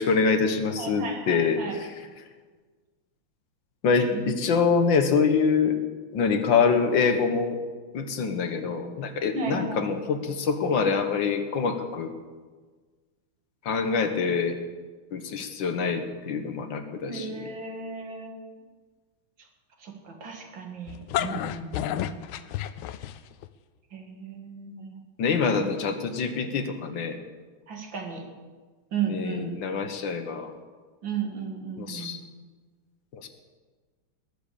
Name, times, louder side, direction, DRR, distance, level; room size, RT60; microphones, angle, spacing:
voice 1, 0.0-1.9 3.8-5.8 6.1-7.6 7.9-12.1 13.6-14.6 15.1-17.4 25.2-27.2 29.1-30.5 31.8-32.2 33.1-33.3, left 5 dB, 65° left, 8 dB, 1.7 m, -25 dB
voice 2, 0.8-1.7 4.1-4.3 9.3-9.9 17.1-18.3 19.8-22.2 23.9-25.1 25.6-25.7 27.7-28.2 28.9-29.6 31.0-32.2, right 5 dB, 65° right, 2 dB, 2.8 m, -34 dB
sound 1, 20.9-23.5, left 12 dB, 85° left, 1.5 m, -31 dB
20.0 x 7.5 x 6.8 m, 1.4 s
omnidirectional pair, 2.3 m